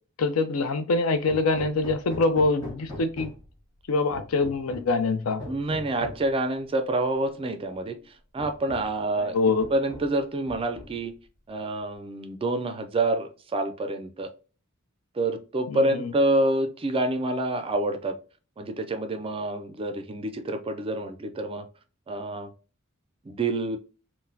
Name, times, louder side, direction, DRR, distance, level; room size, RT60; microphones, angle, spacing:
voice 1, 0.2-3.3 3.9-5.4 9.2-9.7 15.7-16.1, left 3 dB, 80° left, 0.5 m, -24 dB
Hammer, 1.3-3.6 4.1-5.0 5.4-6.3 7.3-7.4 7.9-8.0 8.4-9.0 9.6-10.2 10.5-11.1, left 1 dB, 20° left, 1.4 m, -41 dB
voice 2, 5.5-8.0 8.3-9.3 9.7-11.1 11.5-14.3 15.2-18.2 18.6-21.7 22.1-22.5 23.3-23.8, right 2 dB, 25° right, 0.4 m, -27 dB
3.9 x 2.1 x 2.6 m
head